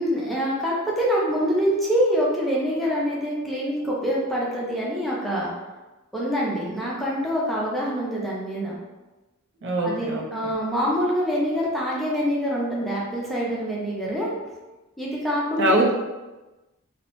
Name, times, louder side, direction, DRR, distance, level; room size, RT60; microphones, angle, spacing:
voice 1, 0.0-5.5 6.1-8.7 9.8-14.3 15.0-15.8, equal, ahead, -6 dB, 0.5 m, -25 dB
voice 2, 9.6-10.5 15.6-15.9, right 1 dB, 60° right, -1 dB, 0.4 m, -23 dB
2.7 x 2.0 x 2.9 m, 1.1 s
head